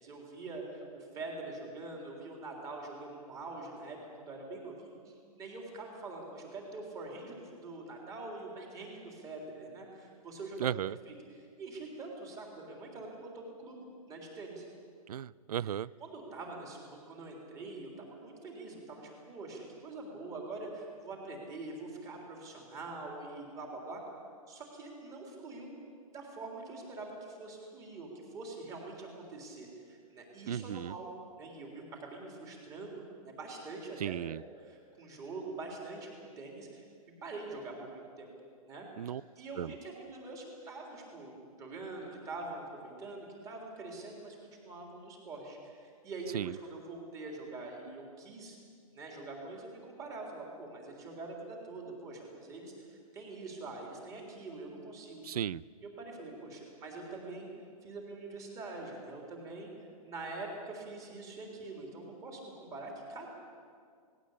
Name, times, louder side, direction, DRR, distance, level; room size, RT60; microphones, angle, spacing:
voice 1, 0.0-10.7 11.1-14.7 16.0-24.0 24.5-25.7 26.1-31.1 31.4-36.8 37.2-38.3 38.7-38.9 39.4-48.6 48.9-55.2 56.0-57.5 57.8-59.7 60.0-63.3, right 3 dB, 20° right, 0 dB, 3.7 m, -44 dB
voice 2, 10.6-11.0 15.1-15.9 30.5-30.9 34.0-34.4 39.0-39.2 39.6-39.7 46.3-46.6 55.2-55.6, right 10 dB, 90° right, 23 dB, 0.5 m, -35 dB
18.5 x 17.5 x 8.6 m, 2.2 s
hypercardioid pair, 160°, 19 cm